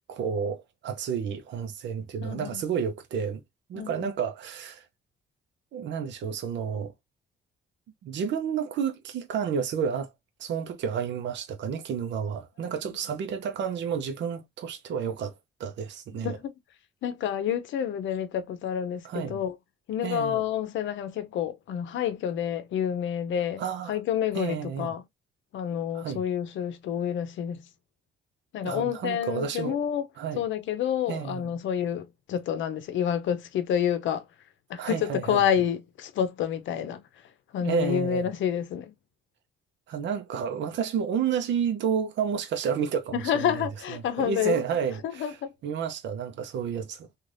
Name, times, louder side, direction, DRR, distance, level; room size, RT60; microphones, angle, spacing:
voice 1, 0.1-3.4 3.7-4.9 5.7-6.9 8.0-10.1 10.4-15.3 15.6-16.4 19.0-19.4 20.0-20.4 23.6-24.0 24.3-24.9 25.9-26.2 28.6-29.8 30.2-30.4 31.1-31.5 34.8-35.4 37.6-38.3 39.9-43.6 43.9-45.4 45.6-47.2, right 7 dB, 65° right, 0.6 m, -31 dB
voice 2, 2.2-2.6 3.7-4.1 16.2-16.5 17.0-19.6 19.9-23.6 23.9-25.0 25.5-27.6 28.5-30.1 30.4-34.2 34.7-37.0 37.5-38.9 43.1-44.6 45.0-45.5, left 9 dB, 75° left, 0.7 m, -28 dB
3.2 x 2.4 x 2.5 m
cardioid pair, 90°, 20 cm